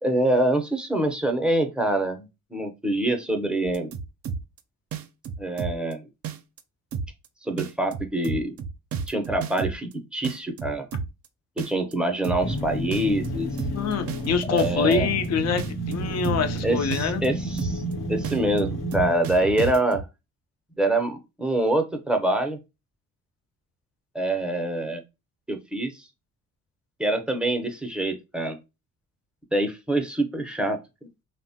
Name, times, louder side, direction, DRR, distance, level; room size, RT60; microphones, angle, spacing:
voice 1, 0.0-3.9 5.4-6.0 7.4-8.5 9.1-10.9 11.6-13.5 14.5-15.1 16.6-17.8 18.1-20.0 20.8-22.6 24.1-25.0 25.5-26.1 27.0-28.6 29.5-30.8, right 1 dB, 5° right, 0.6 m, -25 dB
sound 1, 3.7-4.6 4.9-5.9 6.2-6.6 6.9-7.3 7.6-9.9 10.2-11.3 11.6-11.9 12.2-12.6 12.9-15.3 15.6-16.6 16.9-17.3 17.6-17.9 18.2-20.0, right 6 dB, 50° right, 0.5 m, -32 dB
sound 2, 12.4-19.2, right 1 dB, 80° left, 0.9 m, -31 dB
voice 2, 13.7-17.2, left 6 dB, 60° left, 0.6 m, -25 dB
3.0 x 2.1 x 2.6 m
cardioid pair, 90°, 30 cm